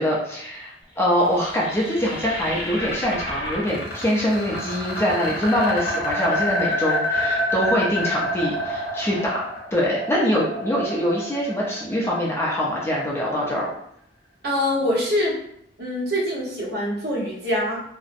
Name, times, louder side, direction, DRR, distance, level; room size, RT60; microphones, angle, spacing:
voice 1, 0.0-13.7, equal, 15° left, -4 dB, 0.5 m, -24 dB
sound 1, 1.0-13.0, left 1 dB, 60° left, 1.1 m, -28 dB
voice 2, 14.4-15.4 15.8-17.8, left 1 dB, 60° right, -5 dB, 0.9 m, -24 dB
2.6 x 2.0 x 2.4 m, 0.72 s
head